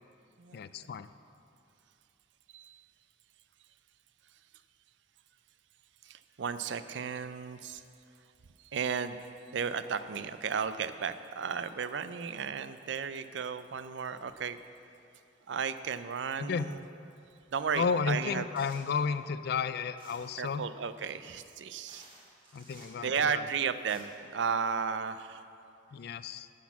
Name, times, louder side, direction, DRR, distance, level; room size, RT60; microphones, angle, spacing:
voice 1, 0.5-1.1 16.4-16.7 17.7-20.6 22.5-23.4 25.9-26.5, left 5 dB, 55° left, 13 dB, 0.3 m, -32 dB
voice 2, 6.0-7.8 8.6-9.2 9.5-14.6 15.5-16.8 17.5-18.5 20.4-22.1 23.0-25.5, right 6 dB, 65° right, 12 dB, 0.4 m, -34 dB
sound 1, 18.6-19.0 20.0-20.4 21.4-21.5 21.9-23.0 23.6-24.0, right 2 dB, 30° right, 1.5 m, -55 dB
10.5 x 6.2 x 7.1 m, 2.6 s
head